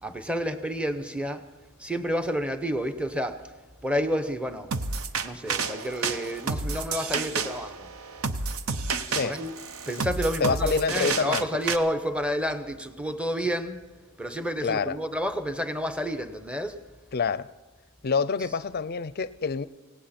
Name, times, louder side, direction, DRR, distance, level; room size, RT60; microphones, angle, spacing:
voice 1, 0.0-1.4 1.8-3.5 3.8-4.7 5.2-7.9 9.1-9.5 9.9-13.8 14.2-16.8, equal, 5° right, 9 dB, 0.8 m, -30 dB
sound 1, 4.7-11.8, right 4 dB, 75° right, 0.8 m, -30 dB
voice 2, 10.4-11.5 14.6-15.0 17.1-17.5 18.0-19.7, left 5 dB, 45° left, 17 dB, 0.5 m, -27 dB
18.0 x 17.5 x 4.3 m, 1.3 s
head